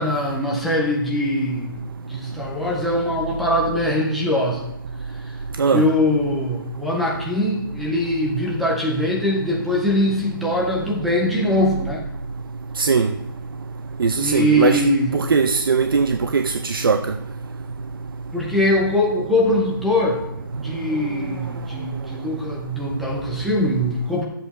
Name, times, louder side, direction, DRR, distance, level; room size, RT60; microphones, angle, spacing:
voice 1, 0.0-1.8 2.1-4.6 5.7-12.0 14.2-15.1 18.3-20.2 20.6-24.2, left 1 dB, ahead, 0.3 m, -22 dB
voice 2, 12.8-13.1 14.0-14.8 15.1-17.0, right 5 dB, 75° right, 0.6 m, -19 dB
11.5 x 7.9 x 4.1 m
hypercardioid pair, 175°, 12 cm